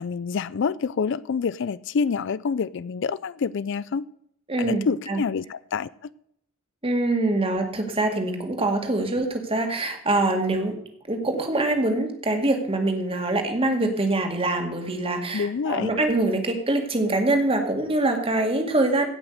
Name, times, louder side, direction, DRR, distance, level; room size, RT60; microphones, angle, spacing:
voice 1, 0.0-4.0 4.6-5.9 15.3-15.9, left 5 dB, 60° left, 0.4 m, -27 dB
voice 2, 4.5-5.2 6.8-10.8 11.1-19.1, right 2 dB, 25° right, 2.1 m, -24 dB
16.5 x 6.1 x 6.5 m
head